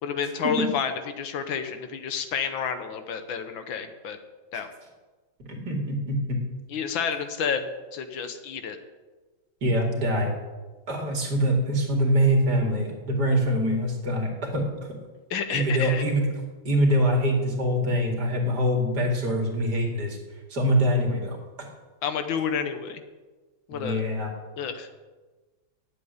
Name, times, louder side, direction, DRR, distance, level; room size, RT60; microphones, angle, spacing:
voice 1, 0.0-4.2 4.5-4.7 6.7-8.8 15.3-16.0 22.0-23.0 23.7-24.0 24.6-24.9, left 7 dB, 70° left, 9 dB, 1.7 m, -30 dB
voice 2, 5.5-6.4 9.6-10.3 10.9-14.6 15.5-16.3 16.6-20.2 20.5-21.4 23.7-24.3, equal, 55° right, 1 dB, 2.8 m, -24 dB
9.2 x 8.0 x 9.4 m, 1.3 s
omnidirectional pair, 2.2 m